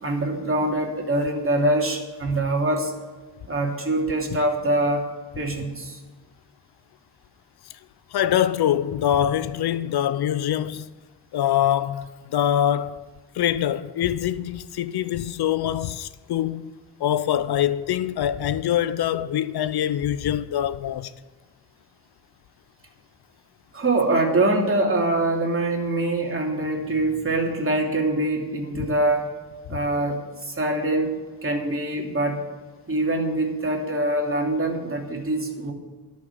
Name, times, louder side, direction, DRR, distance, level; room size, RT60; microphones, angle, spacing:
voice 1, 0.0-2.9 3.5-5.0 5.4-6.0 23.7-29.3 29.7-31.1 31.4-32.4 32.9-35.7, right 2 dB, 30° right, 3.0 m, -24 dB
voice 2, 8.1-10.9 11.3-13.0 13.3-16.7 17.0-21.1, left 11 dB, 70° left, 0.7 m, -24 dB
12.0 x 6.9 x 9.7 m
cardioid pair, 60°, 40 cm